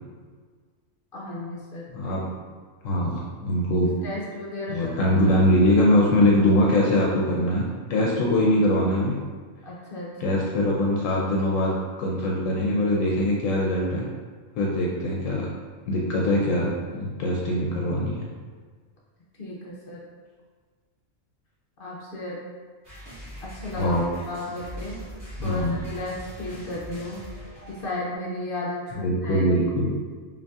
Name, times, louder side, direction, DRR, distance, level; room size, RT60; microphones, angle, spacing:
voice 1, 1.1-2.0 4.0-5.4 8.0-8.1 9.6-10.4 19.4-20.1 21.8-22.4 23.4-24.0 24.3-25.0 25.4-27.2 27.7-29.5, left 1 dB, 55° left, -4 dB, 0.7 m, -34 dB
voice 2, 2.8-3.9 4.7-9.1 10.2-14.0 14.6-15.5 15.9-18.2 23.7-24.0 25.4-25.8 29.0-29.9, left 1 dB, 75° left, -3 dB, 0.9 m, -22 dB
sound 1, 22.8-28.1, equal, 15° right, 1.1 m, -41 dB
5.2 x 2.7 x 2.3 m, 1.5 s
omnidirectional pair, 1.4 m